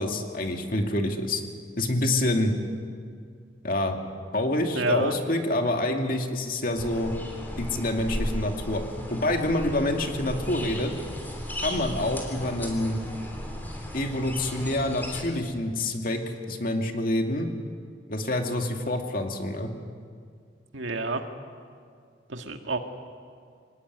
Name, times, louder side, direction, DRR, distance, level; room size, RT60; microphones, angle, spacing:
voice 1, 0.0-1.4 1.8-2.5 3.6-4.0 4.3-7.1 7.6-8.8 9.1-10.9 11.6-13.0 13.9-16.2 16.5-17.5 18.1-19.7, left 1 dB, 45° left, 3 dB, 2.3 m, -27 dB
voice 2, 4.7-5.1 20.7-21.2 22.3-22.8, right 3 dB, 80° right, 5 dB, 2.0 m, -28 dB
sound 1, 6.8-15.2, equal, 10° left, 3.4 m, -35 dB
25.5 x 19.0 x 9.5 m, 2.2 s
head